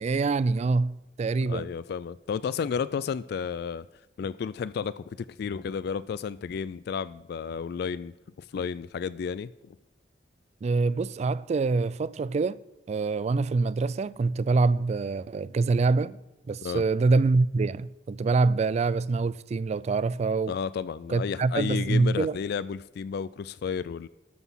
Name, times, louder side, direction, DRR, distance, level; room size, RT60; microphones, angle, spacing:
voice 1, 0.0-1.7 10.6-12.6 12.9-16.2 16.5-20.5 21.1-22.3, right 3 dB, 40° right, 0.3 m, -25 dB
voice 2, 1.5-3.9 4.2-9.8 16.6-16.8 20.5-24.1, left 6 dB, 60° left, 0.3 m, -32 dB
12.5 x 6.1 x 5.5 m
head